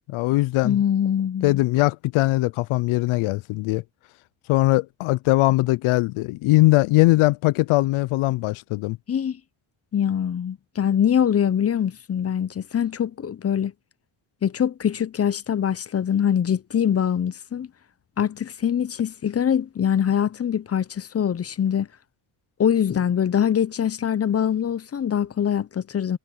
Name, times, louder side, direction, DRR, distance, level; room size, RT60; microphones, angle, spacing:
voice 1, 0.1-0.8 1.4-3.8 4.5-9.0, left 19 dB, 85° left, 0.6 m, -20 dB
voice 2, 0.6-1.6 9.1-9.4 9.9-13.7 14.4-17.7 18.2-21.9 22.6-26.2, left 8 dB, 30° left, 0.6 m, -23 dB
cardioid pair, 85°, 48 cm